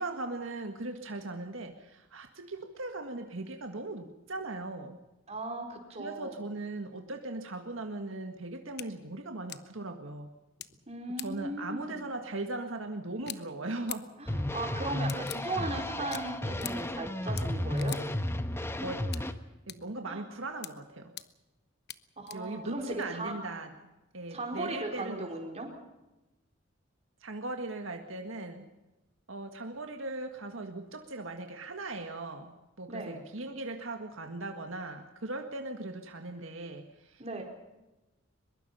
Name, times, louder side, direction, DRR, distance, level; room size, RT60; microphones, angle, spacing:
voice 1, 0.0-5.0 5.9-10.3 11.2-14.1 18.7-19.3 19.7-21.1 22.3-23.7 24.1-25.3 27.2-28.7 29.3-32.5 32.8-37.4, right 2 dB, 75° right, 5 dB, 1.8 m, -39 dB
voice 2, 5.3-6.4 10.9-12.0 14.2-18.0 20.0-20.2 22.2-23.4 24.3-25.7 32.9-33.2 37.2-37.4, right 2 dB, 35° right, 2 dB, 4.6 m, -37 dB
sound 1, 8.8-8.9 9.5-9.6 10.6-10.7 11.2-11.3 13.2-13.4 13.9-14.0 15.1-15.4 16.1-16.2 16.6-16.7 17.4-17.5 17.8-18.0 19.1-19.2 19.7-19.8 20.6-20.7 21.2-21.3 21.9-22.0 22.3-22.4 23.0-23.1, left 13 dB, 55° left, 1.0 m, -40 dB
sound 2, 14.3-19.3, left 1 dB, 15° left, 1.1 m, -33 dB
23.0 x 22.0 x 5.7 m, 1.0 s
head